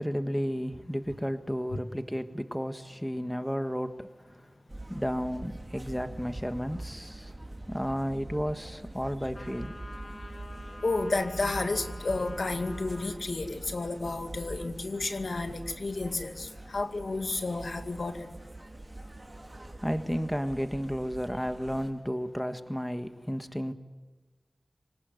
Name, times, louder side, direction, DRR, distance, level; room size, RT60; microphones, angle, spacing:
voice 1, 0.0-4.4 4.9-7.3 7.7-9.7 19.8-23.7, equal, 5° left, 8 dB, 1.6 m, -32 dB
sound 1, 4.7-21.9, right 1 dB, 25° right, 3.4 m, -44 dB
sound 2, 9.3-13.2, left 1 dB, 50° left, 7.0 m, -47 dB
voice 2, 10.8-18.3, left 3 dB, 75° left, 6 dB, 2.3 m, -31 dB
25.5 x 19.0 x 9.4 m, 1.3 s
wide cardioid pair, 70°, 0 cm